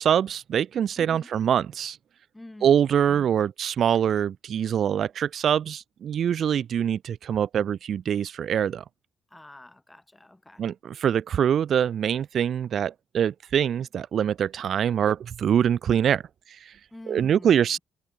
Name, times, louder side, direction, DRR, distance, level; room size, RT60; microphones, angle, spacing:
voice 1, 0.0-2.0 2.6-8.8 10.6-16.2 16.7-16.8 17.1-17.8, right 9 dB, 50° right, 0.4 m, -24 dB
voice 2, 1.0-1.3 2.3-3.4 9.3-10.6 16.9-17.8, left 1 dB, 10° left, 7.6 m, -47 dB
cardioid pair, 165°, 0 cm